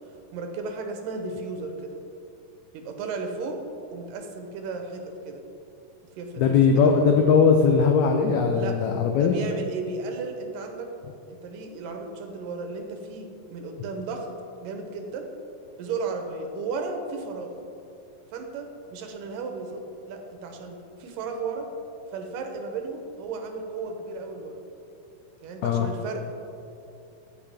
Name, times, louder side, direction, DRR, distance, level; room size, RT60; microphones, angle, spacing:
voice 1, 0.3-1.9 2.7-3.6 3.9-5.4 6.2-6.6 6.8-6.9 8.5-10.9 11.3-14.3 14.6-15.3 15.8-17.5 18.3-19.8 20.1-21.7 22.1-24.6 25.4-26.3, right 4 dB, 90° right, 4 dB, 2.5 m, -34 dB
voice 2, 6.4-9.3 25.6-25.9, left 5 dB, 90° left, 3 dB, 1.6 m, -19 dB
14.5 x 4.8 x 3.4 m, 2.6 s
omnidirectional pair, 3.9 m